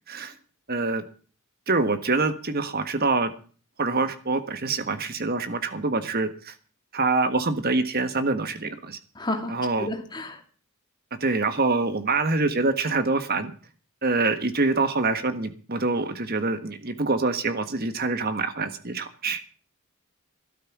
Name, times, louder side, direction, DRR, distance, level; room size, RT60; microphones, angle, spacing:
voice 1, 0.7-1.0 1.7-3.3 3.8-6.5 6.9-9.0 9.5-9.9 11.2-13.5 14.0-19.5, right 3 dB, 45° right, 10 dB, 1.4 m, -25 dB
voice 2, 9.2-10.4, left 1 dB, 20° left, 3 dB, 2.4 m, -31 dB
12.5 x 12.5 x 6.1 m, 0.41 s
head